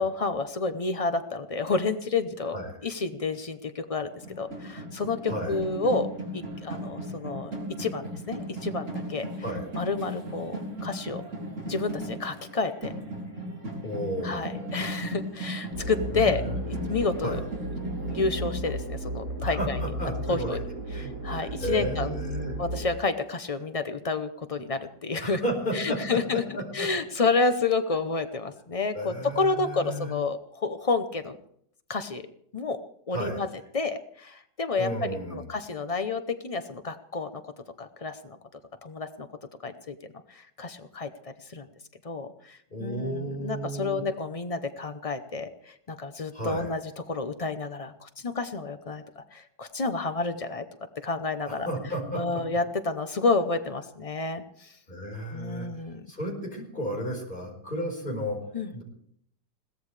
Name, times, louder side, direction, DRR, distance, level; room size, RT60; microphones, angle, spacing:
voice 1, 0.0-2.6 2.8-4.1 4.4-6.1 6.3-9.3 9.7-11.2 11.7-12.9 14.2-17.4 18.1-19.8 20.3-20.6 20.9-22.1 22.6-25.4 25.7-26.4 26.7-31.4 31.9-32.3 32.5-32.8 33.1-33.5 33.7-37.5 37.8-38.4 38.8-39.3 39.6-39.9 40.3-41.7 42.0-46.8 47.1-50.6 51.0-51.7 52.1-54.8 55.3-56.0 58.5-58.7, left 3 dB, 60° left, 8 dB, 0.3 m, -30 dB
sound 1, 4.0-18.5, right 1 dB, 45° right, 4.3 m, -37 dB
voice 2, 5.3-5.6 9.4-9.7 13.8-14.9 16.1-16.5 17.2-17.4 19.4-20.6 20.9-22.6 25.2-26.9 28.9-30.1 33.1-33.5 34.8-35.5 42.7-44.0 46.3-46.7 51.5-52.4 54.9-55.7 56.1-58.4 58.7-58.8, right 1 dB, 25° left, 1 dB, 4.7 m, -33 dB
sound 2, 15.7-22.9, right 1 dB, 60° right, 4.5 m, -34 dB
21.5 x 17.0 x 3.3 m, 0.67 s
omnidirectional pair, 1.9 m